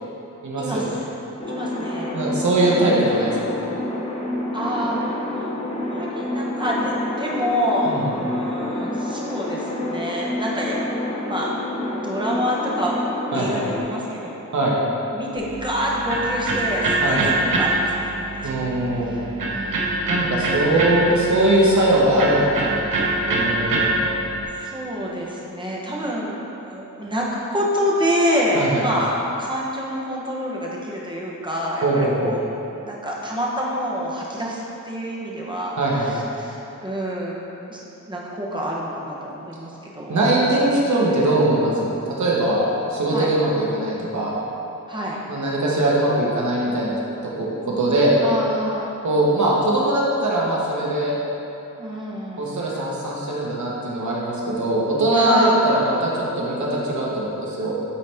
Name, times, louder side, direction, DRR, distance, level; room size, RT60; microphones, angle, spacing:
voice 1, 0.4-0.8 2.1-3.3 7.9-8.1 13.3-13.6 14.5-14.8 17.0-17.3 18.4-19.1 20.1-24.0 28.5-28.8 31.8-32.3 35.8-36.1 40.1-42.6 42.9-44.4 45.3-47.0 47.4-47.5 47.8-48.2 49.0-51.2 52.4-57.7, right 1 dB, 60° right, -5 dB, 1.2 m, -21 dB
sound 1, 1.4-13.8, left 1 dB, 20° left, 0.7 m, -28 dB
voice 2, 1.5-2.1 4.5-10.9 11.2-13.0 13.3-14.4 15.1-18.5 19.5-20.3 21.3-21.4 24.6-32.4 32.8-37.4 37.7-37.8 38.1-40.2 43.1-43.3 44.9-45.2 48.2-48.9 51.8-52.8 55.1-55.6, equal, 15° right, -4 dB, 0.9 m, -27 dB
Electric guitar, 15.4-24.4, right 2 dB, 80° right, 0.9 m, -25 dB
8.4 x 4.2 x 3.5 m, 3.0 s
wide cardioid pair, 160°, 33 cm